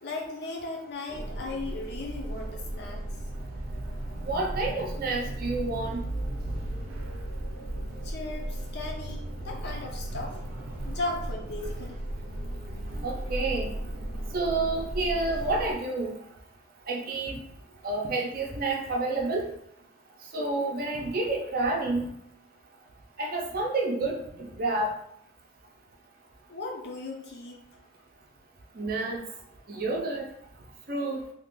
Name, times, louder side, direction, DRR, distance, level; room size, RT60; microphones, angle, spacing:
voice 1, 0.0-3.0 7.6-7.7 8.0-10.4 10.8-12.0 26.5-27.6, left 2 dB, 50° left, 0 dB, 0.6 m, -36 dB
sound 1, 1.1-15.7, right 1 dB, 90° right, 0.6 m, -35 dB
voice 2, 4.2-6.0 13.0-13.7 14.3-16.1 16.9-17.4 17.8-19.5 20.3-22.1 23.2-24.9 28.8-29.2 29.7-30.2 30.9-31.2, right 2 dB, 45° right, 0 dB, 0.6 m, -29 dB
2.8 x 2.5 x 3.6 m, 0.70 s
head